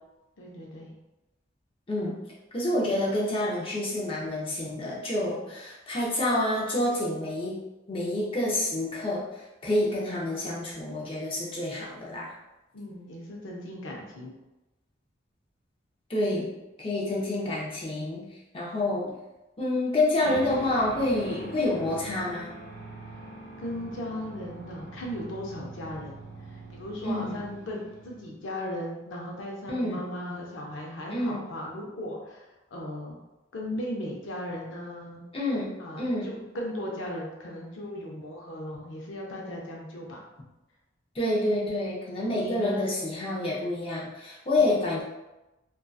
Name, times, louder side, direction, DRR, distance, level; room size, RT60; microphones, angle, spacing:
voice 1, 0.4-0.9 9.9-10.2 12.7-14.3 23.6-26.2 26.5-33.2 33.5-35.3 35.8-40.3 42.4-42.9 44.6-44.7, left 1 dB, 85° left, -2 dB, 0.5 m, -37 dB
voice 2, 1.9-2.2 2.5-7.6 7.9-9.2 9.6-12.3 16.1-16.5 16.8-18.2 18.5-19.1 19.6-22.5 27.0-27.4 29.7-30.0 31.1-31.4 35.3-36.3 41.2-45.0, left 1 dB, 30° left, -5 dB, 0.5 m, -28 dB
sound 1, 20.2-28.5, right 2 dB, 80° right, 0.8 m, -43 dB
2.6 x 2.3 x 2.3 m, 1.0 s
head